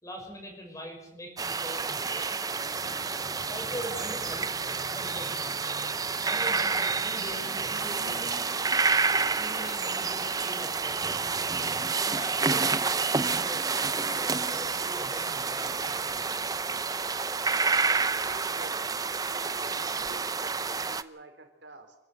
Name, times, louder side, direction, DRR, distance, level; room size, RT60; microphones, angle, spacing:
voice 1, 0.0-2.4 3.5-4.5 4.9-5.6 6.2-8.6 9.4-11.2 12.0-16.5, equal, 20° left, 2 dB, 6.2 m, -42 dB
sound 1, 1.4-21.0, right 4 dB, 20° right, 0.7 m, -29 dB
sound 2, 2.6-11.9, equal, 70° left, 5.3 m, -47 dB
voice 2, 18.2-18.9 19.3-22.0, right 2 dB, 80° right, 5 dB, 4.1 m, -49 dB
27.5 x 12.5 x 7.9 m, 0.91 s
head